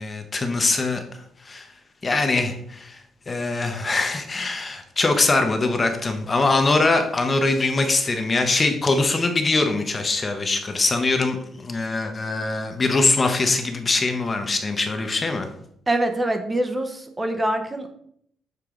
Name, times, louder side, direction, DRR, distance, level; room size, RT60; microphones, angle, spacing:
voice 1, 0.0-1.7 2.0-15.5, left 3 dB, 25° left, 6 dB, 0.8 m, -23 dB
voice 2, 15.9-17.9, right 1 dB, 15° right, 6 dB, 0.8 m, -24 dB
6.8 x 4.6 x 3.7 m, 0.69 s
cardioid pair, 125°, 0 cm